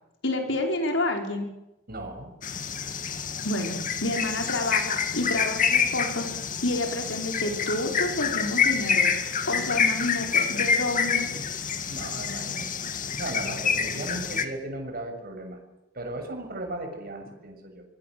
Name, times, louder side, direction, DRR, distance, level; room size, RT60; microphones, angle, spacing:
voice 1, 0.2-1.5 3.4-6.2 6.6-9.1 9.5-11.4, left 2 dB, 65° left, 3 dB, 5.2 m, -29 dB
voice 2, 1.9-2.3 11.9-15.6 15.9-17.8, right 1 dB, 50° right, 4 dB, 6.9 m, -36 dB
sound 1, 2.4-14.5, left 6 dB, 45° left, 2.1 m, -27 dB
26.5 x 24.0 x 7.9 m, 0.92 s
head